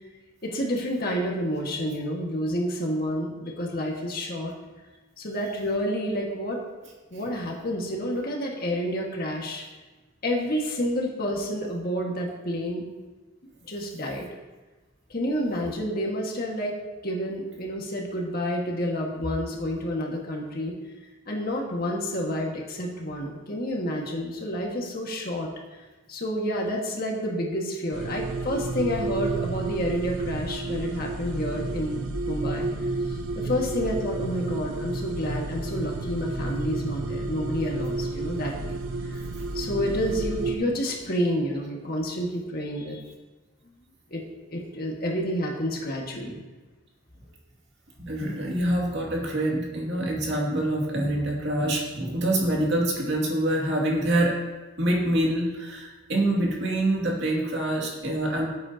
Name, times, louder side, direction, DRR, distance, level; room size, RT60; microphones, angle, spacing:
voice 1, 0.4-4.5 5.2-6.6 7.1-9.6 10.2-12.9 13.7-14.3 15.1-16.8 17.0-20.8 21.3-32.0 32.3-38.8 39.0-39.2 39.5-43.0 44.1-46.4, equal, 45° left, -1 dB, 1.8 m, -29 dB
sound 1, 27.9-40.6, right 2 dB, 80° right, 1.0 m, -31 dB
voice 2, 48.0-54.3 54.8-58.5, right 1 dB, 55° right, -3 dB, 2.5 m, -25 dB
17.0 x 8.5 x 2.9 m, 1.2 s
head